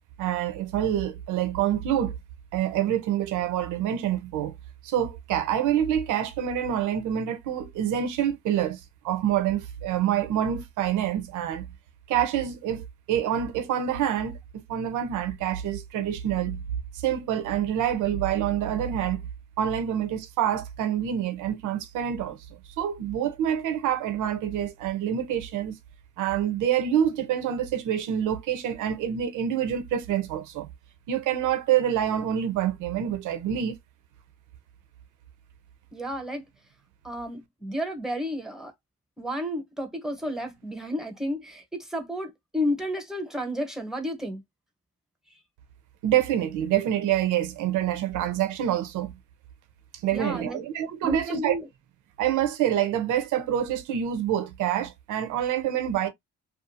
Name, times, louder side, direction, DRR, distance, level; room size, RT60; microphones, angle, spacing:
voice 1, 0.2-2.1 2.5-4.5 4.8-11.6 12.1-14.4 14.7-16.6 16.9-19.2 19.6-22.4 22.8-25.8 26.2-30.7 31.1-33.8 46.0-49.2 50.0-51.5 52.2-56.1, right 10 dB, 85° right, 0.6 m, -26 dB
voice 2, 35.9-36.4 37.0-38.7 39.2-44.4 50.1-50.6 51.0-51.7, equal, ahead, 0.8 m, -31 dB
2.5 x 2.3 x 2.6 m
cardioid pair, 90°, 30 cm